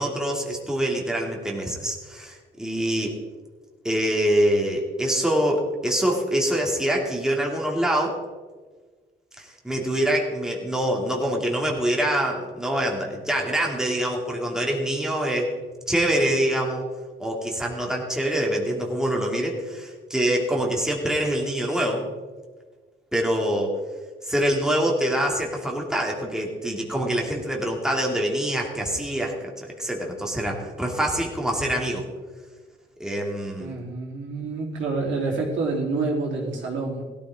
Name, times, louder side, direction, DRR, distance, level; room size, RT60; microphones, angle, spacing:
voice 1, 0.0-3.2 3.8-8.2 9.4-15.5 15.9-16.9 17.2-22.1 23.1-23.7 24.2-32.0 33.0-33.7, right 1 dB, 5° right, -1 dB, 2.9 m, -25 dB
voice 2, 33.6-37.0, right 3 dB, 70° right, -3 dB, 4.0 m, -27 dB
17.0 x 13.5 x 3.9 m, 1.4 s
cardioid pair, 90°, 20 cm